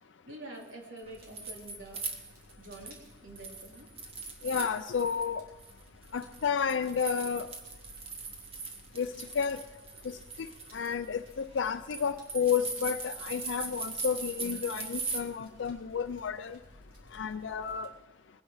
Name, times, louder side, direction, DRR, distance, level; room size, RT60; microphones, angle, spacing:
voice 1, 0.2-2.1 2.6-3.9, right 1 dB, 90° right, 0 dB, 3.1 m, -47 dB
sound 1, 1.0-3.0 3.4-5.3 5.6-15.2, right 4 dB, 30° right, 1.4 m, -40 dB
Fire, 1.0-17.9, equal, 50° right, 3.7 m, -57 dB
voice 2, 4.4-5.4 6.1-7.5 9.0-9.6 10.0-10.2 10.7-16.6 17.1-17.9, left 6 dB, 85° left, 7 dB, 0.5 m, -31 dB
20.5 x 10.0 x 4.8 m, 1.2 s
head